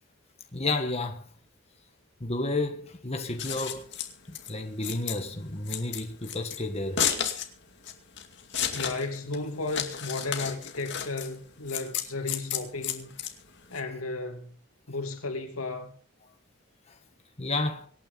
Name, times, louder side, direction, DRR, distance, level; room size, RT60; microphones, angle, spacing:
voice 1, 0.5-1.2 2.2-3.9 4.3-7.1 17.4-17.9, left 2 dB, 30° left, 1.5 m, -31 dB
Scissors, 3.2-13.8, left 9 dB, 55° left, 2.4 m, -33 dB
voice 2, 8.7-13.1 13.7-14.5 14.9-15.9, left 3 dB, 85° left, 2.9 m, -34 dB
25.0 x 9.4 x 4.0 m
head